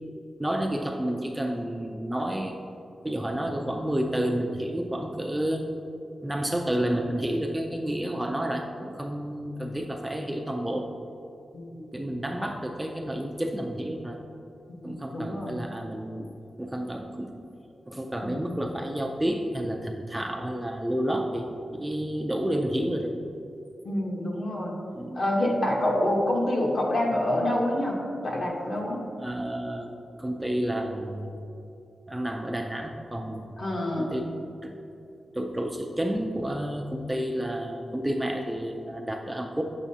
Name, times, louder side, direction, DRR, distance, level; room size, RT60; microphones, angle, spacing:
voice 1, 0.4-2.6 3.0-5.6 6.2-10.9 11.9-14.2 14.8-16.3 16.6-17.3 17.9-21.5 21.7-23.2 24.9-25.2 29.2-29.9 30.2-31.4 32.1-33.6 34.0-34.3 34.6-34.7 35.3-39.6, right 1 dB, 10° right, 2 dB, 0.4 m, -30 dB
voice 2, 11.5-11.9 14.7-15.7 18.2-18.4 23.8-24.8 25.1-29.0 33.6-34.2, left 1 dB, 45° left, -1 dB, 1.1 m, -27 dB
8.3 x 7.1 x 2.8 m, 2.7 s
wide cardioid pair, 165°, 0 cm